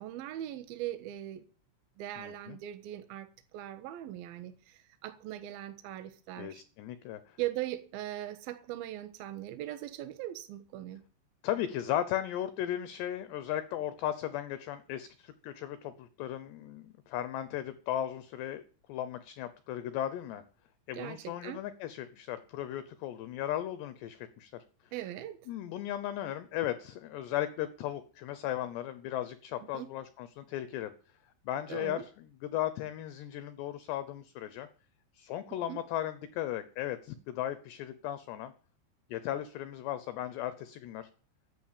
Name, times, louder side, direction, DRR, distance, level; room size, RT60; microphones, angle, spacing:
voice 1, 0.0-1.4 2.0-6.6 7.4-11.0 20.9-21.6 24.9-25.4 29.7-29.9 31.7-32.0 35.5-35.8, right 13 dB, 65° right, 2.6 m, -40 dB
voice 2, 2.2-2.6 6.4-7.4 11.4-18.6 18.9-20.4 20.9-24.6 25.5-30.9 31.5-34.7 35.1-38.5 39.1-41.1, left 12 dB, 75° left, 2.7 m, -36 dB
14.0 x 8.8 x 8.7 m
omnidirectional pair, 5.7 m